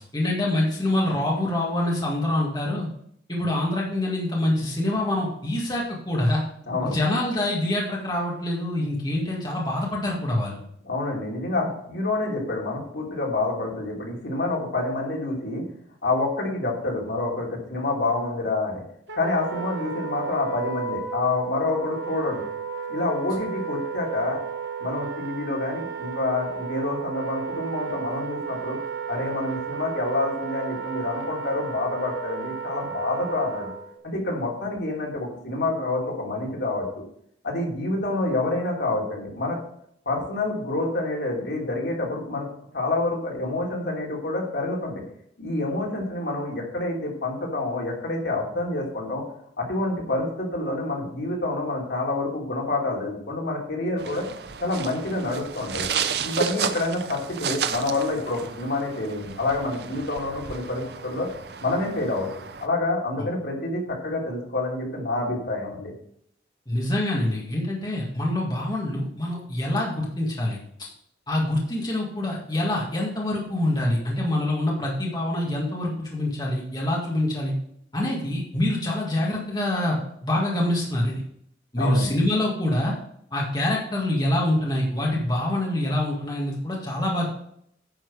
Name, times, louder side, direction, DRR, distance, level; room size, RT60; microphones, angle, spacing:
voice 1, 0.1-2.9 3.3-6.4 6.8-10.6 66.7-70.6 71.3-77.5 77.9-81.2 81.7-82.9 83.3-87.3, left 1 dB, 25° left, -3 dB, 1.9 m, -25 dB
voice 2, 6.7-7.0 10.8-15.6 16.0-18.8 19.1-22.4 22.9-24.4 24.8-28.8 29.1-33.7 34.0-37.0 37.4-39.6 40.0-42.5 42.7-45.0 45.4-49.2 49.6-54.2 54.6-55.9 56.2-61.3 61.6-62.3 62.6-65.9 81.8-82.1, left 2 dB, 70° left, -2 dB, 3.1 m, -27 dB
Wind instrument woodwind instrument, 19.1-34.0, right 6 dB, 85° right, 1.3 m, -33 dB
sound 1, 54.0-62.7, right 7 dB, 60° right, 0.6 m, -33 dB
10.0 x 6.1 x 4.8 m, 0.69 s
head